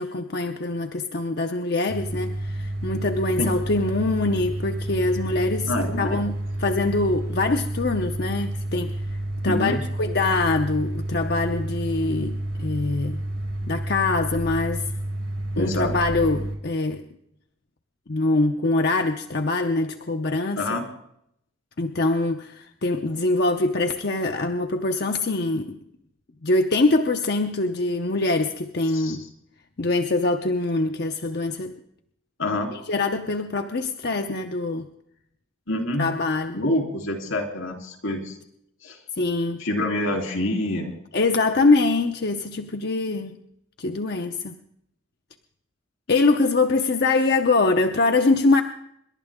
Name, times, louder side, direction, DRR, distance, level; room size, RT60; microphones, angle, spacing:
voice 1, 0.0-8.9 9.4-13.2 13.7-14.8 15.6-17.0 18.1-20.6 21.8-25.8 26.4-29.2 29.8-31.7 32.9-34.9 36.0-36.6 39.2-39.6 41.1-43.4 43.8-44.6 46.1-48.6, left 3 dB, 50° left, 5 dB, 0.7 m, -23 dB
sound 1, 1.9-16.6, right 1 dB, 85° right, 4.6 m, -30 dB
voice 2, 5.7-6.2 9.4-9.8 15.5-16.0 20.6-20.8 28.9-29.2 32.4-32.7 35.7-36.1 36.5-38.4 38.8-39.0 39.6-40.9, left 1 dB, 80° left, 3 dB, 3.3 m, -26 dB
27.0 x 12.0 x 3.6 m, 0.74 s
head